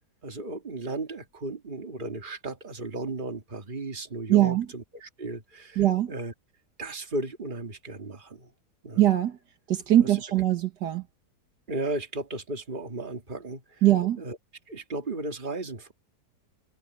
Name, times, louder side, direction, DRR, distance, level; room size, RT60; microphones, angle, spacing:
voice 1, 0.2-6.3 6.8-8.5 8.8-9.0 11.7-13.6 14.2-14.4 14.7-15.9, right 2 dB, 30° right, 2.2 m, -35 dB
voice 2, 4.3-4.7 5.8-6.1 9.0-9.4 9.7-11.0 13.8-14.2, right 13 dB, 80° right, 2.0 m, -22 dB
omnidirectional pair, 1.8 m